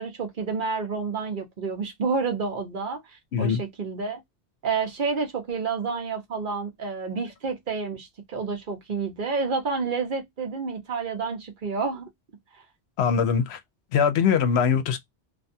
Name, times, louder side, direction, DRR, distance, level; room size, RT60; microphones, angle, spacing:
voice 1, 0.0-3.0 3.4-4.2 4.6-12.0, right 4 dB, 55° right, 0.9 m, -29 dB
voice 2, 13.0-13.6 13.9-15.0, left 7 dB, 80° left, 0.8 m, -22 dB
2.5 x 2.3 x 2.5 m
omnidirectional pair, 1.1 m